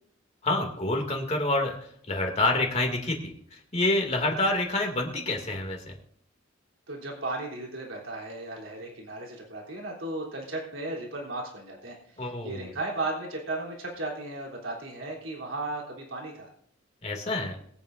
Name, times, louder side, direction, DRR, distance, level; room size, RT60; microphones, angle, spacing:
voice 1, 0.4-1.8 2.1-5.9 12.2-12.7 17.0-17.6, left 2 dB, 35° left, 1 dB, 2.4 m, -27 dB
voice 2, 6.9-16.5, right 2 dB, 75° right, -2 dB, 3.4 m, -35 dB
22.0 x 8.8 x 2.6 m, 0.65 s
head